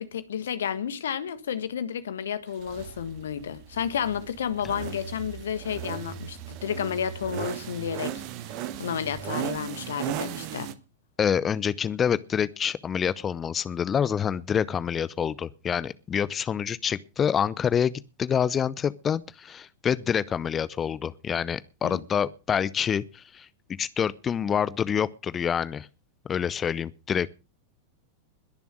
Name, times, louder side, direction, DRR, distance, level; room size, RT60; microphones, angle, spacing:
voice 1, 0.0-8.2 8.8-10.7 21.8-22.0, left 8 dB, 65° left, 1.6 m, -31 dB
sound 1, 2.6-10.7, right 10 dB, 45° right, 1.5 m, -37 dB
voice 2, 11.2-23.5 23.8-25.9 26.2-27.3, left 8 dB, 25° left, 0.7 m, -27 dB
21.0 x 7.1 x 6.2 m
figure-of-eight pair, 90°, 0 cm